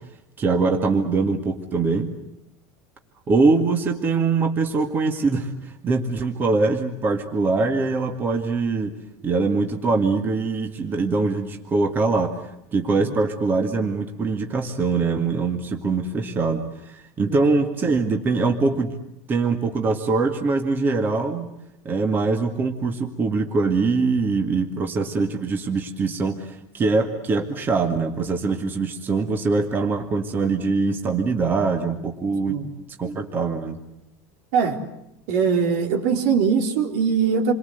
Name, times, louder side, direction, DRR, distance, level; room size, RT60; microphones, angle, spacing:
voice 1, 0.4-2.1 3.3-5.5 5.8-8.9 9.2-12.4 12.7-18.9 19.3-21.5 21.9-32.6 33.0-33.8, right 4 dB, 25° right, 4 dB, 2.0 m, -23 dB
voice 2, 35.3-37.5, right 6 dB, 70° right, 4 dB, 4.1 m, -21 dB
28.5 x 23.0 x 8.2 m, 0.83 s
cardioid pair, 155°, 9 cm